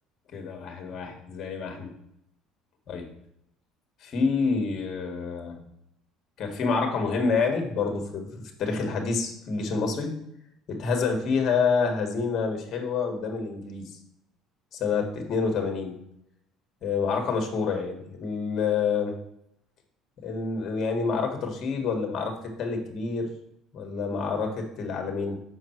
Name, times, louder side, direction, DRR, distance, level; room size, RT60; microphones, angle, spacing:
voice 1, 0.3-2.0 2.9-3.1 4.0-5.6 6.4-10.1 10.7-14.0 14.7-16.0 16.8-19.2 20.2-23.3 23.7-25.4, left 5 dB, 40° left, 3 dB, 1.6 m, -28 dB
7.2 x 5.6 x 4.5 m, 0.78 s
cardioid pair, 150°, 0 cm